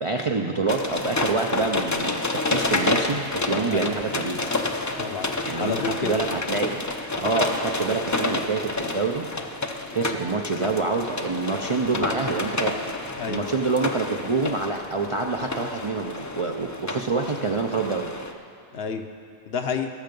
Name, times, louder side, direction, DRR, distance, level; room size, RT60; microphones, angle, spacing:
voice 1, 0.0-4.5 5.4-6.9 7.1-9.3 9.9-12.8 13.3-18.1, right 3 dB, 40° right, 2 dB, 0.5 m, -26 dB
sound 1, 0.7-18.3, left 2 dB, 25° left, 0.4 m, -29 dB
voice 2, 5.0-5.3 5.5-6.1 13.2-13.4 18.7-19.0 19.5-19.9, left 6 dB, 65° left, 6 dB, 1.0 m, -29 dB
18.0 x 6.7 x 5.3 m, 2.4 s
omnidirectional pair, 1.2 m